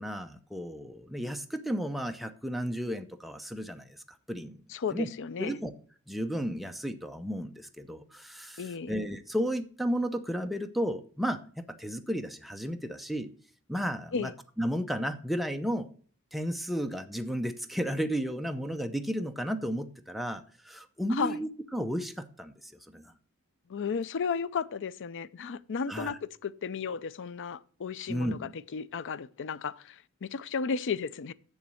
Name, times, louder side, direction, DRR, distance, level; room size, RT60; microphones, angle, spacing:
voice 1, 0.0-4.0 4.3-4.6 4.9-5.1 5.4-5.7 6.1-13.3 13.7-14.3 14.6-15.9 16.3-23.1 25.9-26.1 28.1-28.5, equal, ahead, 0.7 m, -33 dB
voice 2, 4.7-5.6 8.6-8.9 14.1-14.3 21.1-21.4 23.7-31.3, left 5 dB, 55° left, 0.5 m, -34 dB
7.2 x 7.1 x 6.4 m
head